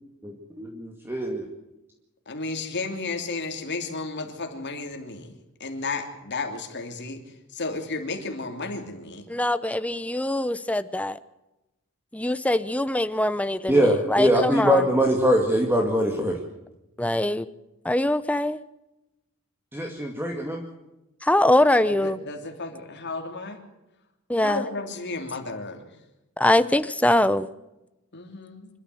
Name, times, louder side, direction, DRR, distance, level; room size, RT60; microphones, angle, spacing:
voice 1, 0.2-1.5 13.7-16.4 19.7-20.6, equal, 10° right, 2 dB, 2.1 m, -23 dB
voice 2, 2.3-5.3 5.6-7.2 7.5-9.3 21.8-23.6 24.4-25.8 28.1-28.7, left 3 dB, 55° left, 4 dB, 3.2 m, -33 dB
voice 3, 9.3-11.2 12.1-14.9 17.0-17.5 17.8-18.6 21.2-22.2 24.3-24.6 26.4-27.5, left 1 dB, 5° left, 13 dB, 0.8 m, -23 dB
25.5 x 13.0 x 7.8 m, 0.95 s
head